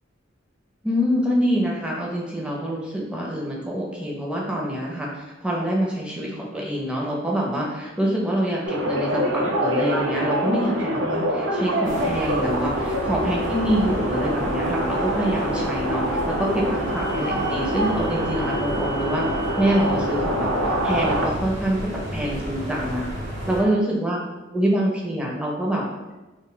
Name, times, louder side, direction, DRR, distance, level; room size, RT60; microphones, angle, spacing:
voice 1, 0.8-19.3 19.6-23.0 23.5-24.2 24.5-25.8, equal, 5° right, -3 dB, 0.5 m, -25 dB
sound 1, 8.6-21.3, equal, 70° right, 0.4 m, -25 dB
sound 2, 11.8-23.6, equal, 45° right, 0.9 m, -33 dB
2.3 x 2.1 x 3.8 m, 1.1 s
head